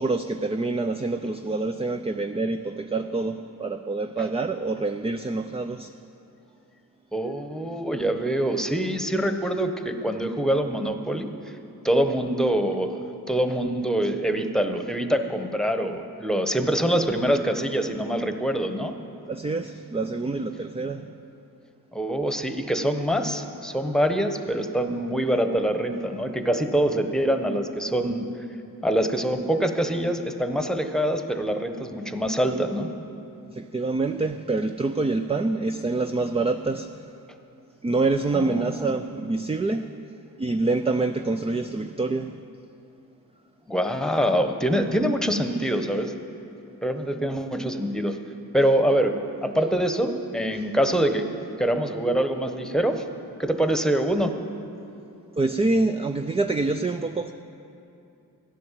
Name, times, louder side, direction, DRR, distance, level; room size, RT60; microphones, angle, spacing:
voice 1, 0.0-5.9 19.3-21.1 33.5-37.1 37.8-40.0 40.4-42.4 55.4-57.3, right 3 dB, 15° right, 7 dB, 0.4 m, -26 dB
voice 2, 7.1-11.3 11.8-13.0 13.3-19.0 21.9-28.3 28.8-32.9 38.3-38.9 43.7-46.1 46.8-48.2 48.5-51.3 51.6-53.0 53.4-54.4, right 1 dB, ahead, 7 dB, 1.1 m, -25 dB
14.0 x 9.9 x 7.5 m, 2.8 s
cardioid pair, 60°, 37 cm